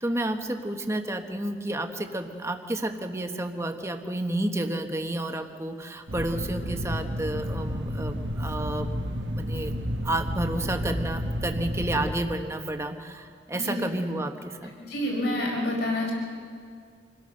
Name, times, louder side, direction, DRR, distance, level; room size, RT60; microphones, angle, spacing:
voice 1, 0.0-9.7 10.0-14.7, right 1 dB, 15° right, 5 dB, 1.2 m, -31 dB
sound 1, 6.1-12.1, equal, 80° right, 1.6 m, -31 dB
voice 2, 14.9-16.1, left 1 dB, 65° left, -2 dB, 5.4 m, -28 dB
26.5 x 16.5 x 6.5 m, 2.1 s
head